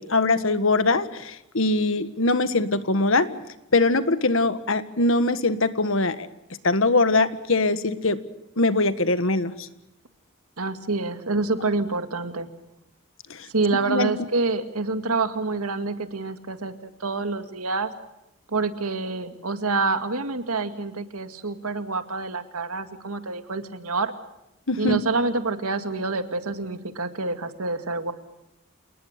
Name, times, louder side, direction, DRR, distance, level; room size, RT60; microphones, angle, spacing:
voice 1, 0.0-3.3 3.7-6.3 6.6-8.2 8.6-9.7 13.3-13.5 13.9-14.1 24.7-25.0, left 2 dB, 65° left, 13 dB, 1.6 m, -22 dB
voice 2, 10.6-12.5 13.5-17.9 18.5-24.1 24.8-28.1, right 3 dB, 90° right, 9 dB, 2.2 m, -27 dB
28.5 x 20.0 x 6.7 m, 0.91 s
head